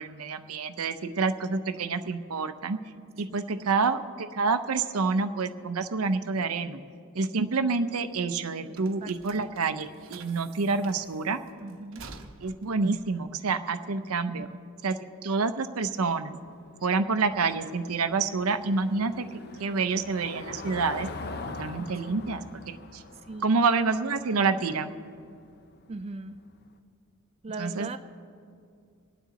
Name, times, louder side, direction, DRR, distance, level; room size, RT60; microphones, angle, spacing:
voice 1, 0.0-2.8 3.2-6.8 7.1-11.4 12.4-14.5 14.8-14.9 15.2-16.4 16.8-19.3 19.6-21.1 21.6-22.4 22.7-23.0 23.4-24.9 27.6-28.0, right 4 dB, 90° right, 10 dB, 0.7 m, -28 dB
voice 2, 3.3-3.7 8.7-9.5 11.6-12.1 14.3-14.6 21.9-22.4 23.1-23.6 25.9-26.4 27.4-28.0, right 3 dB, 30° right, 9 dB, 0.4 m, -41 dB
sound 1, 7.5-14.3, right 4 dB, 65° right, 0.9 m, -50 dB
Car passing by / Engine, 16.0-26.6, left 3 dB, 50° left, 0.7 m, -43 dB
25.0 x 9.1 x 4.0 m, 2.4 s
head